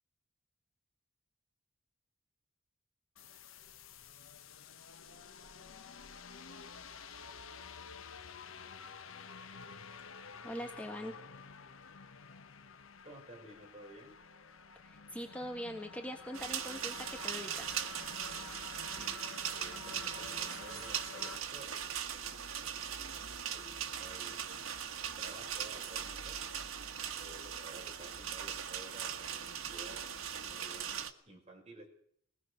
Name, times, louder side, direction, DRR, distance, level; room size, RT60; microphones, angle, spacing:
sound 1, 3.2-21.4, left 5 dB, 85° left, 1.1 m, -50 dB
voice 1, 10.4-11.2 14.8-17.7, equal, 5° left, 3 dB, 1.5 m, -42 dB
voice 2, 13.0-14.2 18.9-19.2 19.5-21.7 22.1-22.8 23.2-24.4 25.2-26.4 27.1-30.0 30.4-31.9, right 2 dB, 35° right, 1 dB, 6.0 m, -53 dB
sound 2, 16.3-31.1, right 8 dB, 90° right, 1.6 m, -40 dB
21.5 x 19.5 x 6.5 m, 0.66 s
head